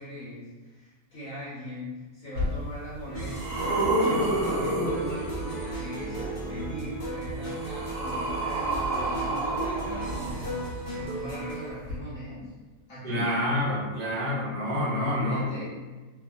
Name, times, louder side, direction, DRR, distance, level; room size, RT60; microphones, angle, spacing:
voice 1, 0.0-10.6 10.9-12.5 12.9-13.3 14.9-15.6, equal, 60° left, -10 dB, 1.0 m, -40 dB
sound 1, 2.4-2.5 3.0-5.8 7.0-10.9 11.8-11.9, right 1 dB, 60° right, 1.3 m, -29 dB
sound 2, 3.1-11.7, right 2 dB, 45° left, 0.6 m, -35 dB
voice 2, 13.0-15.4, left 1 dB, 45° right, -7 dB, 0.8 m, -28 dB
2.9 x 2.3 x 2.4 m, 1.3 s
omnidirectional pair, 1.8 m